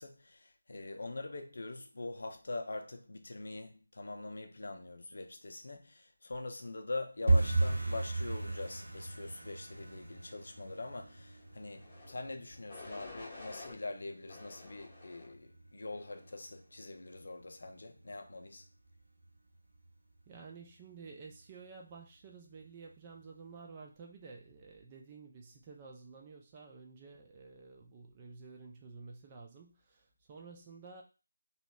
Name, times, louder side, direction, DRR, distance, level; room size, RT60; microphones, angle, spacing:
voice 1, 0.0-18.6, left 2 dB, 50° left, 0.5 m, -43 dB
sound 1, 7.3-18.0 18.2-18.9 19.2-19.5 19.8-20.1 20.4-20.5 21.0-21.6 21.9-22.0 22.5-22.6, right 2 dB, 65° right, 1.2 m, -36 dB
sound 2, 11.7-12.1 12.7-13.8 14.3-15.3 15.9-16.3, left 3 dB, 20° left, 0.9 m, -50 dB
voice 2, 20.3-31.0, right 4 dB, 20° right, 0.4 m, -52 dB
2.9 x 2.7 x 2.3 m
figure-of-eight pair, 160°, 0 cm